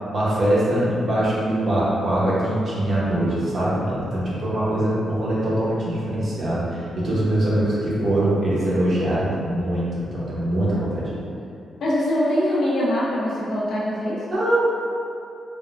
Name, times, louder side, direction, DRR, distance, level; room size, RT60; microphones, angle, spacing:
voice 1, 0.1-11.2 14.3-14.6, right 1 dB, 45° right, -8 dB, 0.8 m, -22 dB
voice 2, 11.8-14.4, left 1 dB, 75° left, -7 dB, 0.7 m, -23 dB
3.5 x 2.1 x 2.5 m, 2.6 s
cardioid pair, 120°, 0 cm